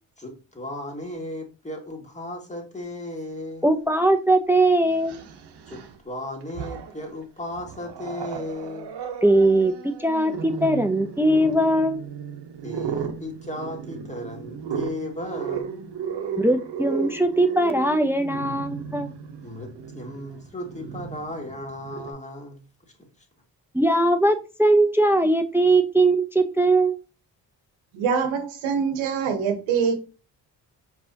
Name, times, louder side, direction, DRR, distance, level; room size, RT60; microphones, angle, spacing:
voice 1, 0.2-3.7 5.7-8.9 12.6-15.7 19.4-22.6, left 1 dB, 15° left, 1.9 m, -35 dB
voice 2, 3.6-5.1 9.2-12.0 16.4-19.1 23.7-27.0, right 1 dB, 5° right, 0.6 m, -20 dB
Growling, 3.9-4.0 4.9-6.0 6.4-7.1 7.5-22.1, right 7 dB, 60° right, 0.9 m, -35 dB
voice 3, 27.9-30.0, right 6 dB, 85° right, 1.0 m, -24 dB
4.7 x 3.8 x 2.8 m
supercardioid pair, 50°, 46 cm